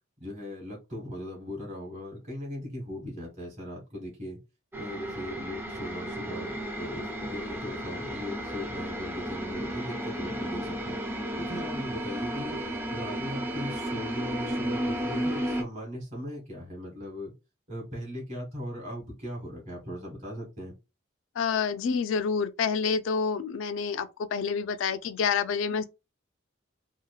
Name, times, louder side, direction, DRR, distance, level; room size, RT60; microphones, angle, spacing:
voice 1, 0.2-4.4 4.7-11.0 11.4-12.6 12.9-17.3 17.7-20.7, equal, 35° right, 1.1 m, -38 dB
sound 1, 4.7-15.6, equal, 10° right, 0.3 m, -33 dB
voice 2, 21.4-25.8, left 6 dB, 70° left, 0.3 m, -28 dB
2.8 x 2.0 x 2.2 m
head